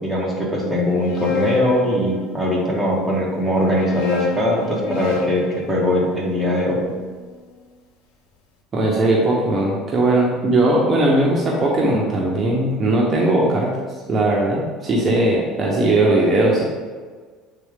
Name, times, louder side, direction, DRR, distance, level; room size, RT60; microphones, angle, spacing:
voice 1, 0.0-6.8, left 1 dB, ahead, -5 dB, 1.6 m, -21 dB
sound 1, 0.8-2.7 3.5-7.6, left 7 dB, 80° left, 0.7 m, -32 dB
voice 2, 8.7-13.7 14.1-16.7, right 2 dB, 30° right, -3 dB, 1.0 m, -18 dB
7.6 x 3.7 x 3.6 m, 1.5 s
cardioid pair, 125°, 0 cm